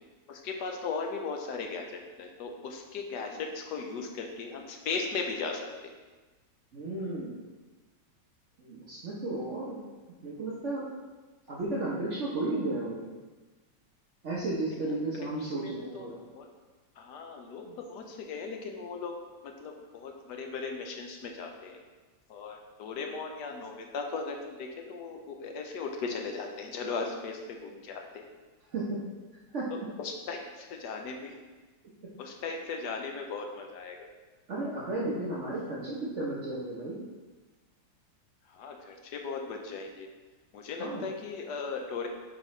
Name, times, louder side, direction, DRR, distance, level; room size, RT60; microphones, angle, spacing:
voice 1, 0.3-5.9 14.8-15.0 15.6-16.1 16.4-16.5 17.0-19.1 19.4-21.8 22.3-28.2 30.0-31.3 32.2-34.0 38.5-40.1 40.5-42.1, left 4 dB, 70° left, 3 dB, 1.2 m, -37 dB
voice 2, 6.7-7.4 8.6-9.8 10.2-10.9 11.5-13.1 14.2-16.2 17.7-17.8 28.7-28.8 29.5-29.7 34.5-37.0 40.8-41.0, right 2 dB, 50° right, -6 dB, 1.0 m, -33 dB
7.3 x 4.5 x 3.1 m, 1.3 s
omnidirectional pair, 2.0 m